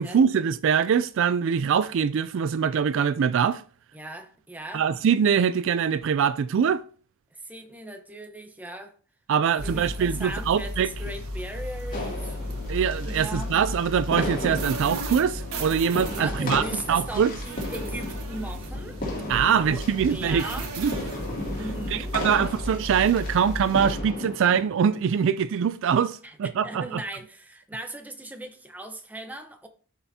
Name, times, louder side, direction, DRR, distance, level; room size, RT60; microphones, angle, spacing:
voice 1, 0.0-3.6 4.7-6.8 9.3-10.9 12.7-16.6 16.9-17.3 19.3-20.4 20.8-20.9 21.9-27.0, right 7 dB, 55° right, 0.3 m, -23 dB
voice 2, 3.9-4.8 7.3-8.9 9.6-12.4 13.1-13.6 16.1-19.0 19.5-20.7 21.6-22.6 26.2-26.4 26.6-29.7, right 1 dB, 5° right, 0.9 m, -38 dB
sound 1, 9.6-24.0, equal, 75° right, 1.6 m, -34 dB
sound 2, 11.9-25.0, left 1 dB, 40° left, 2.6 m, -35 dB
13.0 x 5.7 x 2.8 m
head